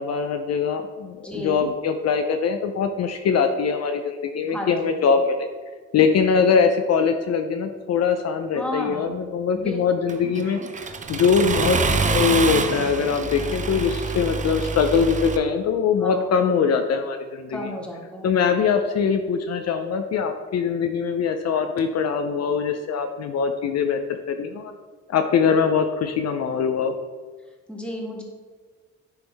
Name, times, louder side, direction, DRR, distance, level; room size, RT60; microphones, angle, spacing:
voice 1, 0.0-5.5 5.9-17.7 18.2-24.0 24.3-24.7 25.1-26.9, left 6 dB, 60° left, 6 dB, 0.6 m, -22 dB
voice 2, 1.2-1.7 4.5-5.1 8.5-9.2 9.5-10.1 16.0-16.3 17.5-18.3 27.7-28.2, equal, 5° left, -1 dB, 1.6 m, -33 dB
Accelerating revving vroom, 10.1-15.4, right 4 dB, 25° right, 0.6 m, -26 dB
10.5 x 3.5 x 3.4 m, 1.5 s
cardioid pair, 90°, 30 cm